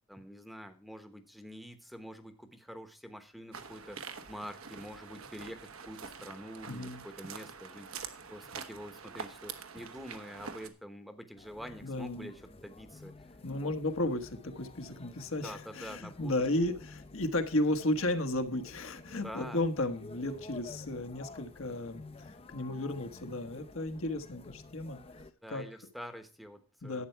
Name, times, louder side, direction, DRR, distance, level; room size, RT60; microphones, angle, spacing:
voice 1, 0.1-13.1 13.6-13.7 15.4-16.3 19.2-19.6 25.4-27.0, equal, ahead, 8 dB, 1.0 m, -46 dB
sound 1, 3.5-10.7, right 6 dB, 75° right, 1.2 m, -45 dB
voice 2, 6.7-7.0 11.8-12.3 13.4-22.0 22.5-25.0 25.5-25.7 26.8-27.1, left 1 dB, 65° left, 7 dB, 1.2 m, -33 dB
sound 2, 11.4-25.3, left 3 dB, 25° left, 0.6 m, -51 dB
11.5 x 8.3 x 4.4 m, 0.37 s
head